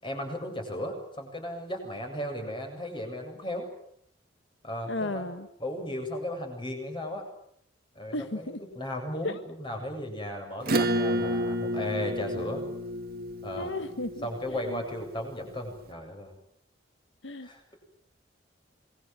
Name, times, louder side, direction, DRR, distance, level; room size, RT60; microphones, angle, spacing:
voice 1, 0.0-3.7 4.6-5.3 5.6-7.2 7.9-12.6 13.4-13.7 14.2-16.3 17.4-17.7, left 1 dB, 25° left, 4 dB, 7.9 m, -35 dB
voice 2, 4.9-5.5 8.1-8.6 9.2-9.4 13.6-14.8 17.2-17.5, left 2 dB, 85° left, 9 dB, 1.5 m, -34 dB
Acoustic guitar / Strum, 10.6-15.6, equal, 55° right, 2.1 m, -31 dB
27.5 x 22.0 x 9.1 m, 0.70 s
head